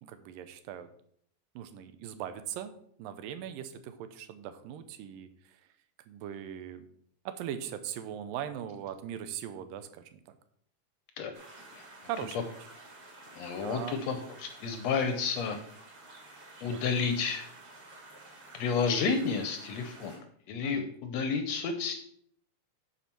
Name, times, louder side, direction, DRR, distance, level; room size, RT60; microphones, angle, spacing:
voice 1, 0.0-0.9 1.6-2.7 3.0-5.6 6.1-6.9 7.3-10.2 12.0-12.5 13.6-14.1 16.6-16.8 20.6-20.9, right 9 dB, 90° right, 10 dB, 2.5 m, -40 dB
sound 1, 11.3-20.2, right 2 dB, 40° right, 3.7 m, -51 dB
voice 2, 13.3-15.6 16.6-17.5 18.5-20.2 20.5-21.9, left 5 dB, 75° left, 7 dB, 1.6 m, -31 dB
9.9 x 4.4 x 5.9 m, 0.65 s
omnidirectional pair, 3.9 m